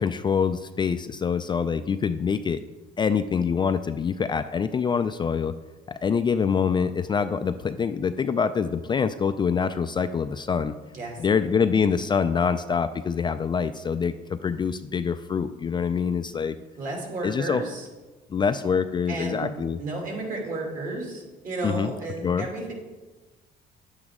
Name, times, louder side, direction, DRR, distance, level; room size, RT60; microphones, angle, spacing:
voice 1, 0.0-2.6 3.0-5.5 5.9-10.7 11.2-16.6 17.2-17.6 18.3-19.8 21.6-21.9 22.2-22.5, left 6 dB, 25° left, 10 dB, 0.3 m, -25 dB
voice 2, 16.8-17.9 19.1-19.5 19.8-22.7, right 2 dB, 50° right, 0 dB, 2.7 m, -32 dB
9.7 x 8.1 x 3.6 m, 1.2 s
cardioid pair, 110°, 17 cm